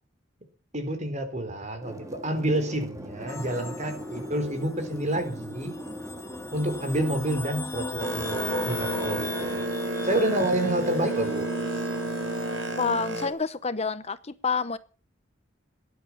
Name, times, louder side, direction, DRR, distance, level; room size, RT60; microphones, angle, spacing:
voice 1, 0.7-5.7 6.5-9.7 10.0-11.5, right 1 dB, 40° right, 3.7 m, -28 dB
sound 1, 1.8-7.4, equal, 15° right, 2.2 m, -40 dB
sound 2, 3.3-13.0, left 2 dB, 15° left, 1.6 m, -38 dB
Boat Water vehicle, 8.0-13.3, right 1 dB, 80° right, 5.7 m, -31 dB
voice 2, 12.8-14.8, left 5 dB, 35° left, 0.8 m, -28 dB
17.5 x 10.5 x 7.1 m
head